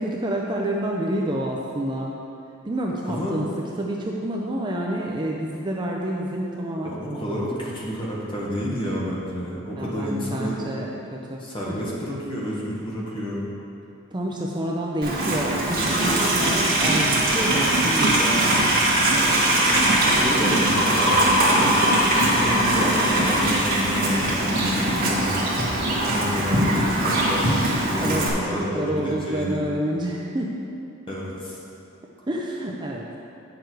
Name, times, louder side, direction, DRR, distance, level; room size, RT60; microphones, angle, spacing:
voice 1, 0.0-2.1 2.6-3.5 3.8-7.4 9.8-11.8 14.1-18.7 28.0-30.5 32.3-33.1, right 1 dB, 20° right, -2 dB, 0.6 m, -28 dB
voice 2, 6.8-10.6 11.4-13.5 19.5-21.7 22.2-25.5 26.0-27.5 27.9-29.6 31.1-31.6, equal, 25° left, -5 dB, 1.7 m, -30 dB
Livestock farm animals working animals, 15.0-28.3, right 1 dB, 45° right, 1.7 m, -21 dB
9.1 x 6.8 x 4.7 m, 2.7 s
head